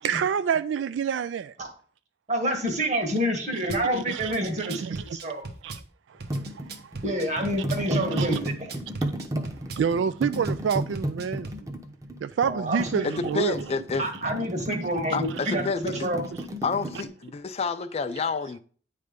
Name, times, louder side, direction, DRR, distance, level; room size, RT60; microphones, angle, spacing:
voice 1, 0.0-1.5 3.9-5.2 5.6-5.8 7.9-8.4 9.8-11.7 12.2-13.6 14.8-14.9 15.4-15.5, right 7 dB, 75° right, 0.3 m, -28 dB
voice 2, 2.3-4.8 5.1-5.5 7.0-8.5 12.4-13.0 14.0-16.2, equal, 40° right, 1.6 m, -28 dB
Drum kit / Bass drum, 3.7-3.9 4.2-5.9 6.2-7.9 8.2-9.9 10.3-11.6, right 3 dB, 60° right, 0.8 m, -39 dB
sound 1, 6.3-17.1, right 1 dB, 20° right, 0.8 m, -33 dB
voice 3, 13.0-14.1 15.1-16.1 16.6-18.6, left 4 dB, 35° left, 0.4 m, -29 dB
9.3 x 3.3 x 5.1 m
head